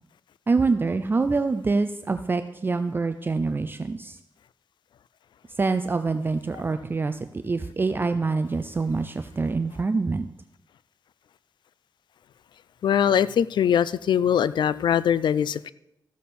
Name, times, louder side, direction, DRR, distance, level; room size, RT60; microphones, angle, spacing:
voice 1, 0.5-4.2 5.6-10.3, right 4 dB, 30° right, 0.5 m, -25 dB
voice 2, 12.8-15.7, left 9 dB, 80° left, 0.4 m, -22 dB
14.5 x 7.2 x 4.3 m
wide cardioid pair, 100°, 8 cm